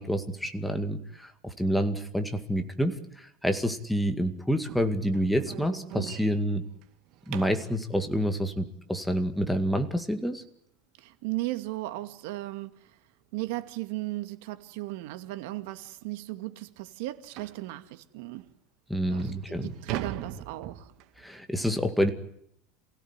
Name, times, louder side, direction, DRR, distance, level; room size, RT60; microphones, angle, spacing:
voice 1, 0.0-6.6 7.3-10.4 18.9-19.7 21.2-22.1, equal, ahead, 2.1 m, -28 dB
sound 1, 4.6-7.7 10.6-10.7 11.1-11.3 11.7-11.8 12.3-12.4 13.5-13.6 14.0-14.1 14.8-14.9 15.2-15.3 15.8-15.9 17.4-17.7 18.4-18.5 19.0-21.3, right 12 dB, 45° right, 2.2 m, -40 dB
voice 2, 11.0-13.0 13.3-18.5 19.1-20.9, right 18 dB, 65° right, 2.3 m, -36 dB
28.5 x 17.0 x 9.8 m
supercardioid pair, 160°, 0 cm